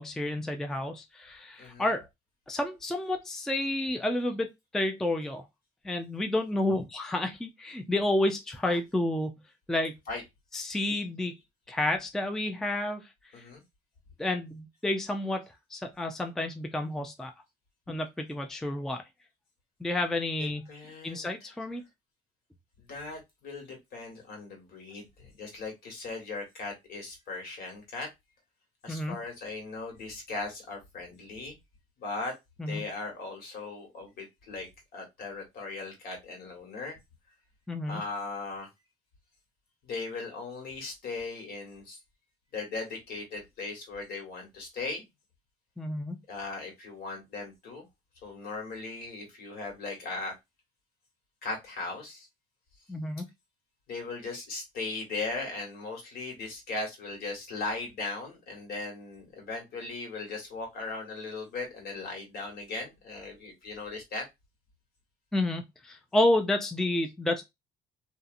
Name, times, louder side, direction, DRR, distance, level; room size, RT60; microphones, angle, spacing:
voice 1, 0.0-2.1 2.5-4.5 4.7-5.4 5.8-9.3 9.7-9.9 10.5-11.3 11.7-13.0 13.4-13.5 14.2-17.3 17.9-19.0 19.8-20.6 21.0-21.8 28.9-29.2 32.6-32.8 37.7-38.0 45.8-46.2 52.9-53.3 65.3-67.4, left 1 dB, 5° left, 0.4 m, -30 dB
voice 2, 1.6-2.0 10.0-10.2 13.3-13.6 20.4-21.6 22.8-28.1 28.8-31.6 32.0-32.3 32.7-37.0 37.8-38.7 39.8-42.0 42.5-45.0 46.3-47.9 48.2-50.3 51.4-52.3 53.9-64.3, left 3 dB, 65° left, 1.5 m, -38 dB
2.7 x 2.4 x 2.5 m
cardioid pair, 110°, 17 cm